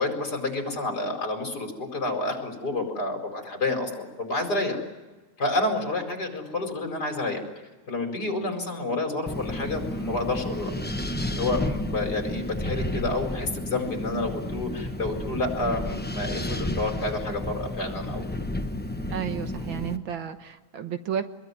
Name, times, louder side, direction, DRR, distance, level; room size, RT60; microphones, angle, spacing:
voice 1, 0.0-4.8 5.4-7.4 7.9-10.7 11.3-18.2, left 2 dB, 50° left, 3 dB, 5.2 m, -29 dB
Wind, 9.3-20.0, left 1 dB, 10° left, 0.4 m, -32 dB
voice 2, 19.1-21.2, right 8 dB, 70° right, 8 dB, 1.9 m, -32 dB
25.0 x 22.0 x 9.6 m, 1.2 s
omnidirectional pair, 2.3 m